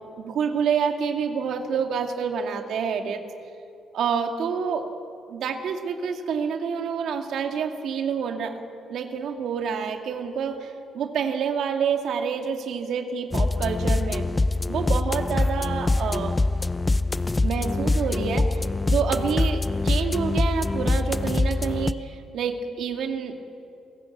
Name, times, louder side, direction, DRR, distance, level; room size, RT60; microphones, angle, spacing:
voice 1, 0.2-3.2 3.9-4.9 5.3-8.6 8.9-14.3 14.7-16.3 17.4-23.4, right 6 dB, 70° right, 5 dB, 2.2 m, -28 dB
sound 1, 13.3-21.9, left 2 dB, 20° left, 0.6 m, -24 dB
28.5 x 15.5 x 8.5 m, 2.6 s
cardioid pair, 90°, 0 cm